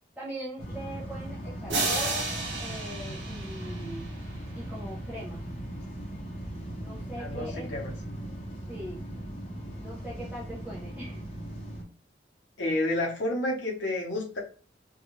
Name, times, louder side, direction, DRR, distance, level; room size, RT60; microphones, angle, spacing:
voice 1, 0.2-2.3 2.6-4.1 4.5-5.4 6.8-7.7 8.7-9.0 9.8-11.2, equal, 10° right, -6 dB, 0.5 m, -40 dB
sound 1, 0.6-11.8, right 1 dB, 35° left, 0.7 m, -39 dB
sound 2, 1.7-4.4, right 3 dB, 70° right, 0.8 m, -32 dB
voice 2, 7.2-7.9 12.6-14.4, left 1 dB, 85° left, -2 dB, 0.8 m, -30 dB
2.6 x 2.3 x 2.9 m, 0.39 s
head